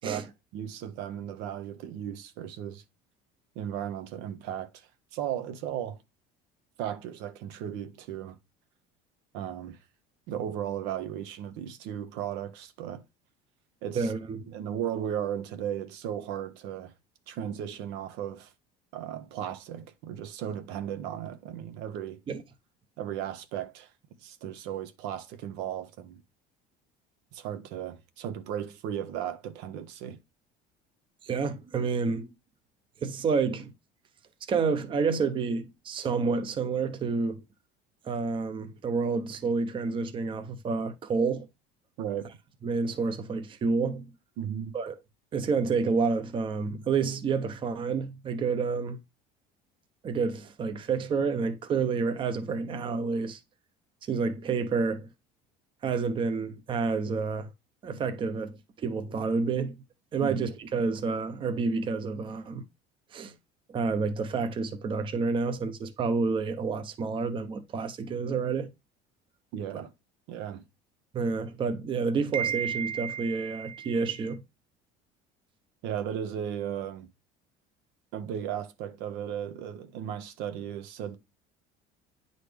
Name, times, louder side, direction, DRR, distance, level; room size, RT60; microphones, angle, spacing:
voice 1, 0.5-2.8 3.5-6.0 6.8-8.4 9.3-9.8 10.3-13.0 13.8-14.1 14.5-16.9 17.3-18.5 18.9-22.2 23.0-23.9 24.2-26.2 27.3-30.2 42.0-42.3 44.4-44.8 60.2-60.4 69.5-69.9 70.3-70.6 75.8-77.1 78.1-81.2, right 10 dB, 75° right, 1.1 m, -35 dB
voice 2, 13.9-14.5 22.3-22.4 31.2-32.3 33.0-33.7 34.5-37.4 38.0-41.5 42.6-44.1 44.7-44.9 45.3-49.0 50.0-53.4 54.1-55.1 55.8-57.5 57.8-59.8 60.1-62.6 63.1-63.3 63.7-68.7 71.1-74.4, right 4 dB, 30° right, 0.8 m, -29 dB
9.7 x 4.1 x 3.3 m
cardioid pair, 150°, 18 cm